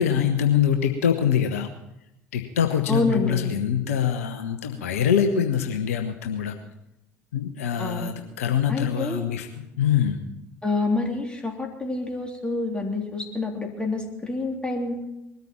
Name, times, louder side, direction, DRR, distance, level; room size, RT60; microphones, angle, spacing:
voice 1, 0.0-1.7 2.3-6.5 7.3-10.2, left 8 dB, 70° left, 7 dB, 0.9 m, -24 dB
voice 2, 2.9-3.4 7.8-8.1 8.7-9.3 10.6-15.0, left 2 dB, 10° left, 1 dB, 3.3 m, -27 dB
21.0 x 13.5 x 4.4 m, 0.87 s
figure-of-eight pair, 60°, 8 cm